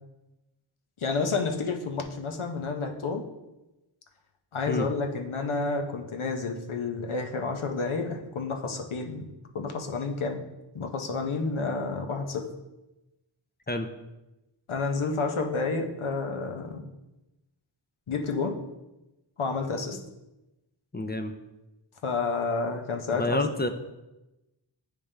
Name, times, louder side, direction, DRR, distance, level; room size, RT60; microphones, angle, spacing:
voice 1, 1.0-3.2 4.5-9.3 9.5-10.4 10.7-12.5 14.7-16.8 18.1-18.6 19.4-20.0 22.0-23.4, left 4 dB, 80° left, 4 dB, 0.8 m, -30 dB
voice 2, 20.9-21.3 23.1-23.7, left 1 dB, 20° left, 7 dB, 0.4 m, -28 dB
8.8 x 3.4 x 3.2 m, 0.99 s
wide cardioid pair, 55°, 48 cm